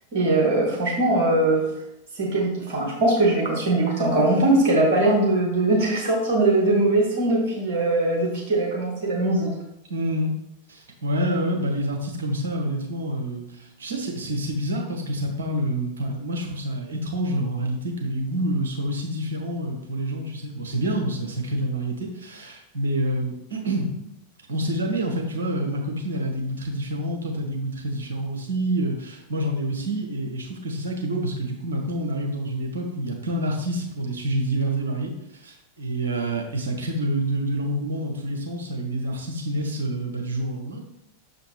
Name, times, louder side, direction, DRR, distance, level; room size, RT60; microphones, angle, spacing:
voice 1, 0.1-1.6 2.2-9.5, right 2 dB, 50° right, -2 dB, 2.0 m, -21 dB
voice 2, 9.9-10.3 10.7-23.9 24.5-40.8, right 1 dB, 70° right, 1 dB, 1.1 m, -27 dB
6.9 x 4.9 x 3.2 m, 0.81 s
figure-of-eight pair, 90°, 0 cm